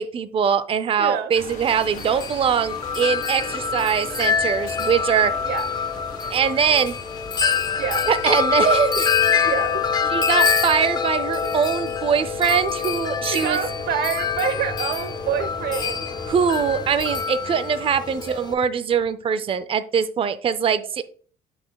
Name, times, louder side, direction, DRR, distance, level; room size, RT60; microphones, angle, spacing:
voice 1, 0.0-5.3 6.3-7.0 8.1-9.0 9.3-9.5 10.1-13.6 16.3-21.0, right 7 dB, 35° right, 0.5 m, -22 dB
voice 2, 1.0-1.4 5.5-5.7 7.8-8.1 9.4-10.3 11.4-11.5 13.2-16.1 18.2-18.6, right 7 dB, 70° right, 0.9 m, -28 dB
sound 1, 1.4-17.3, left 1 dB, 45° left, 2.8 m, -39 dB
Wind chime, 1.7-18.5, left 6 dB, 25° left, 0.7 m, -25 dB
7.8 x 6.2 x 2.3 m
cardioid pair, 110°, 17 cm